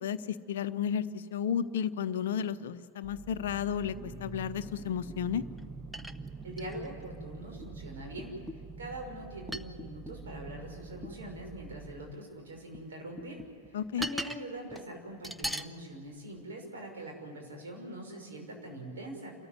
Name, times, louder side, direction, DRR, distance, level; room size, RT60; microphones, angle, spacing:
voice 1, 0.0-5.4 13.7-14.1, left 8 dB, 60° left, 12 dB, 0.8 m, -33 dB
sound 1, 3.0-12.1, right 4 dB, 20° right, 1.2 m, -46 dB
sound 2, 5.6-5.7 5.9-7.1 7.6-7.7 8.2-8.7 9.5-10.2 11.0-11.2 12.3-12.9 13.2-14.4 14.7-14.9 15.2-15.7 16.4-16.5, equal, ahead, 0.8 m, -39 dB
voice 2, 6.4-8.4 8.8-19.3, right 1 dB, 65° right, 1 dB, 6.0 m, -43 dB
29.0 x 14.0 x 9.8 m, 2.3 s
figure-of-eight pair, 90°, 0 cm